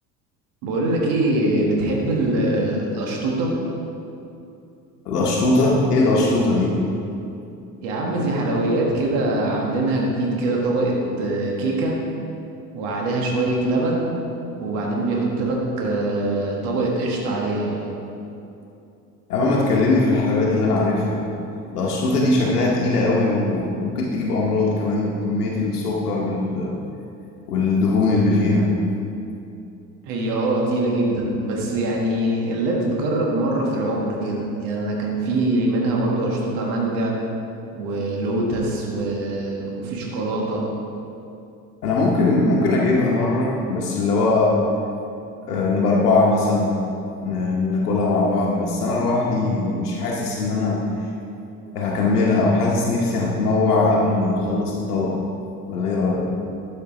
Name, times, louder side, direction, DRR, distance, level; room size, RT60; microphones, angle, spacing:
voice 1, 0.6-3.6 7.8-12.0 12.7-14.1 14.6-17.8 30.0-37.2 37.7-40.6, right 2 dB, 65° right, -2 dB, 1.6 m, -23 dB
voice 2, 5.1-6.8 19.3-21.2 21.7-26.8 27.5-28.7 41.8-44.6 45.4-46.8 47.2-50.8 51.7-55.2 55.7-56.3, left 2 dB, 85° left, -3 dB, 1.0 m, -20 dB
12.0 x 5.4 x 3.8 m, 2.7 s
hypercardioid pair, 65°, 45 cm